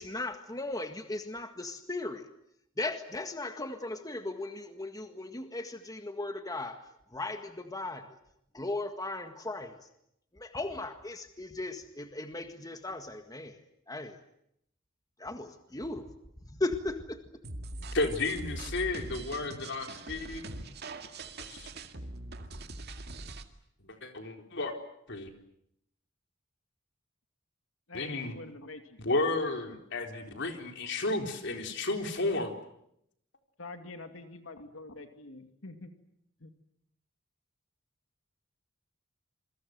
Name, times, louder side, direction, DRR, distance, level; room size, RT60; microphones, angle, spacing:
voice 1, 0.0-2.3 2.8-8.1 8.5-9.7 10.3-13.6 13.9-14.2 15.2-16.1 16.4-17.2, left 2 dB, 20° left, 7 dB, 1.7 m, -37 dB
sound 1, 17.4-23.4, right 2 dB, 55° right, 2.2 m, -42 dB
voice 2, 17.9-20.4 21.5-21.7 23.8-24.8 25.1-25.3 27.9-28.4 29.0-32.5, left 2 dB, 60° left, 5 dB, 4.1 m, -32 dB
voice 3, 27.9-29.8 33.6-35.9 36.4-36.5, left 2 dB, 80° left, 7 dB, 2.5 m, -46 dB
28.0 x 23.0 x 7.9 m, 0.76 s
head